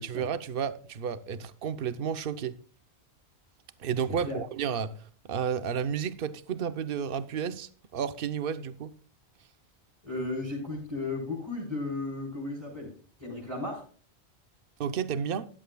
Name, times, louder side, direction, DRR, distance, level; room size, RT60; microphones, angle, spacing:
voice 1, 0.0-2.5 3.8-4.9 5.3-8.9 14.8-15.5, right 7 dB, 55° right, 0.9 m, -32 dB
voice 2, 4.1-4.4 10.0-12.9 13.2-13.8, left 2 dB, 25° right, 4.1 m, -35 dB
13.5 x 11.5 x 2.3 m
omnidirectional pair, 1.1 m